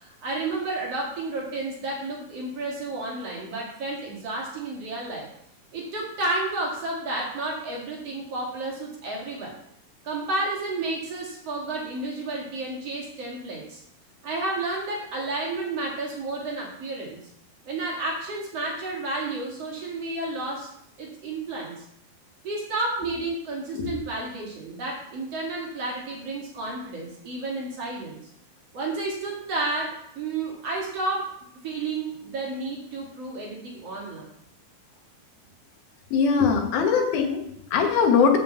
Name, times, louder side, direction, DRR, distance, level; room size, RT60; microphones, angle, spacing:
voice 1, 0.0-5.3 5.7-9.6 10.0-13.8 14.2-17.2 17.7-20.7 21.0-21.8 22.4-28.2 28.7-31.3 31.6-34.3, right 2 dB, 45° right, -2 dB, 3.2 m, -31 dB
voice 2, 36.1-38.4, left 5 dB, 85° left, 3 dB, 3.2 m, -21 dB
7.3 x 7.2 x 7.3 m, 0.72 s
omnidirectional pair, 4.2 m